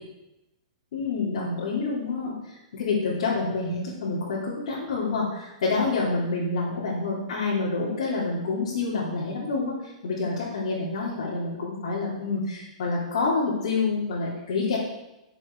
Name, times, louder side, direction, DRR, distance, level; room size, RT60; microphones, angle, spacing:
voice 1, 0.9-14.8, left 3 dB, 65° left, -8 dB, 3.2 m, -28 dB
10.0 x 7.1 x 4.7 m, 0.94 s
hypercardioid pair, 140°, 3 cm